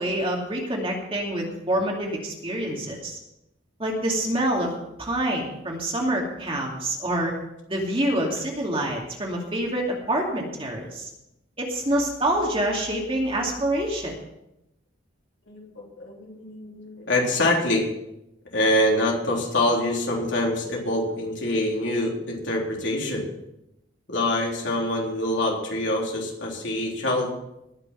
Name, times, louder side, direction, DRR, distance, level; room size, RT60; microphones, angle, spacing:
voice 1, 0.0-3.2 3.8-4.7 5.0-7.3 7.7-11.1 11.6-14.1, right 1 dB, 25° right, -1 dB, 2.5 m, -26 dB
voice 2, 15.5-17.9 18.5-23.2 24.1-27.3, left 1 dB, 65° left, -2 dB, 3.6 m, -25 dB
19.5 x 6.7 x 5.8 m, 0.86 s
head